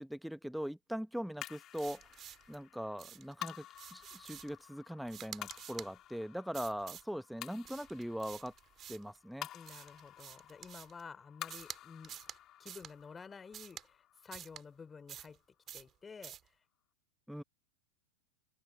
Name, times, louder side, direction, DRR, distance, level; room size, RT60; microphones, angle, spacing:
voice 1, 0.0-2.0 2.5-3.6 3.9-8.5 8.9-9.5 17.3-17.4, equal, ahead, 1.7 m, -41 dB
sound 1, 1.4-15.9, left 13 dB, 30° left, 4.8 m, -52 dB
sound 2, 1.7-2.6 3.0-3.3 3.7-4.6 5.1-5.9 6.5-7.1 7.6-9.2 9.7-11.0 11.5-11.8 12.0-12.4 12.7-12.9 13.5-13.9 14.3-14.6 15.1-15.4 15.7-15.9 16.2-16.5, right 10 dB, 30° right, 2.8 m, -49 dB
voice 2, 9.5-12.2 12.6-15.4 15.7-16.4, left 5 dB, 15° left, 4.2 m, -51 dB
figure-of-eight pair, 90°, 0 cm